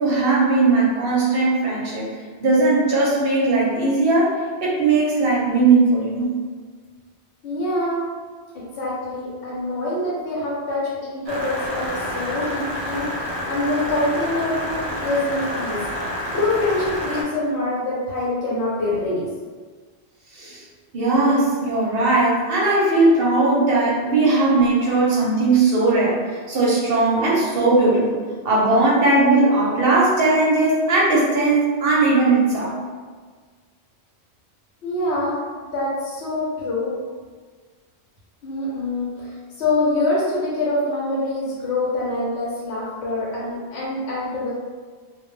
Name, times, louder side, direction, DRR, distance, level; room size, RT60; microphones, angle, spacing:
voice 1, 0.0-2.1 2.4-4.3 4.6-6.3 20.3-20.6 20.9-28.2 28.4-32.8, right 3 dB, 60° right, -6 dB, 0.8 m, -18 dB
voice 2, 7.4-8.0 8.5-13.1 13.5-15.8 16.3-19.3 34.8-37.0 38.4-44.5, left 2 dB, 75° left, -6 dB, 0.8 m, -25 dB
sound 1, 11.3-17.2, equal, 40° right, 0.3 m, -28 dB
2.1 x 2.0 x 3.0 m, 1.5 s
omnidirectional pair, 1.1 m